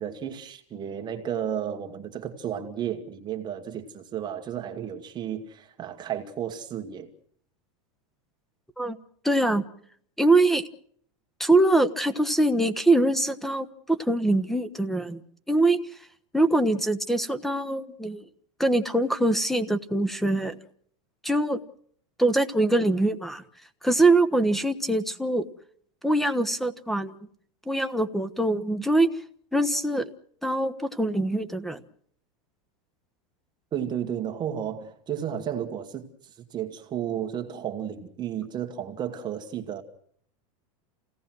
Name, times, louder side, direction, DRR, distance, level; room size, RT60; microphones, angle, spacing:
voice 1, 0.0-7.1 33.7-39.8, right 9 dB, 25° right, 2.1 m, -33 dB
voice 2, 9.2-9.6 10.2-10.6 11.4-15.2 15.5-15.8 16.3-18.2 18.6-20.6 21.2-21.6 22.2-23.4 23.8-25.5 26.0-27.1 27.7-29.1 29.5-30.1 30.4-31.8, right 2 dB, ahead, 1.1 m, -23 dB
28.5 x 18.0 x 6.2 m
supercardioid pair, 145°, 17 cm